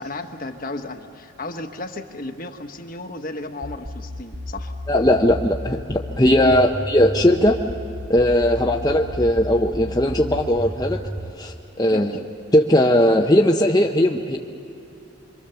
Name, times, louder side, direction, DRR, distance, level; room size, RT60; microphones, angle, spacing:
voice 1, 0.0-4.7 6.4-6.7 8.7-8.8 11.9-12.1, left 2 dB, 45° left, 6 dB, 1.3 m, -33 dB
sound 1, 3.6-11.3, equal, 20° right, 0.7 m, -32 dB
voice 2, 4.9-7.6 8.1-11.0 11.4-12.2 12.5-14.4, left 1 dB, 20° left, 0 dB, 0.8 m, -18 dB
26.5 x 24.0 x 7.0 m, 2.7 s
head